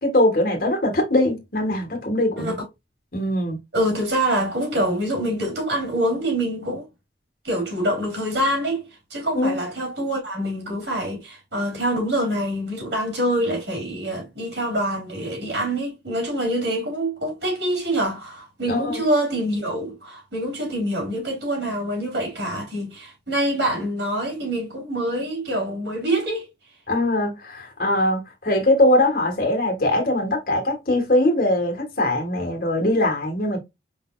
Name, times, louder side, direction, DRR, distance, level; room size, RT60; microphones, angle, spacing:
voice 1, 0.0-2.6 3.1-3.6 9.3-9.6 18.7-19.0 26.9-33.6, left 1 dB, 50° left, 1.6 m, -21 dB
voice 2, 3.7-6.9 7.4-26.5, right 1 dB, 70° right, 3.2 m, -25 dB
5.0 x 4.1 x 2.4 m
head